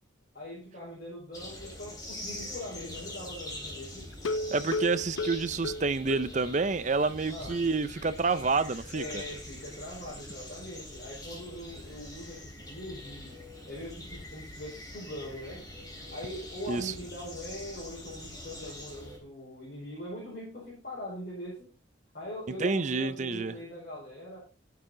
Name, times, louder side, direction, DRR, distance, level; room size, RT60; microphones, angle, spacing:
voice 1, 0.3-4.1 7.3-7.8 8.9-13.4 13.7-15.6 15.9-21.7 22.1-24.4, left 1 dB, 50° left, 4.5 m, -42 dB
sound 1, 1.3-19.2, left 1 dB, 20° left, 3.4 m, -44 dB
sound 2, 4.1-6.7 7.0-7.1 7.5-7.6 8.0-8.1, left 2 dB, 75° left, 0.6 m, -34 dB
voice 2, 4.5-9.2 16.7-16.9 22.6-23.5, right 4 dB, 35° right, 0.5 m, -28 dB
12.0 x 6.9 x 3.8 m
head